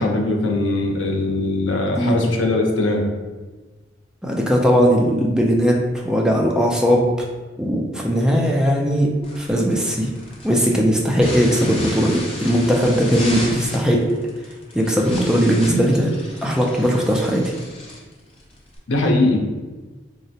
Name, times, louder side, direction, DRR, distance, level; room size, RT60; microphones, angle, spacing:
voice 1, 0.0-3.0 18.9-19.4, left 2 dB, 75° left, 1 dB, 0.5 m, -20 dB
voice 2, 1.8-2.2 4.2-7.1 7.6-10.1 10.4-14.0 14.7-16.1 16.4-17.4, equal, 5° right, -1 dB, 0.3 m, -19 dB
sound 1, 9.2-18.8, left 1 dB, 30° left, 0.7 m, -34 dB
3.8 x 2.1 x 2.7 m, 1.3 s
head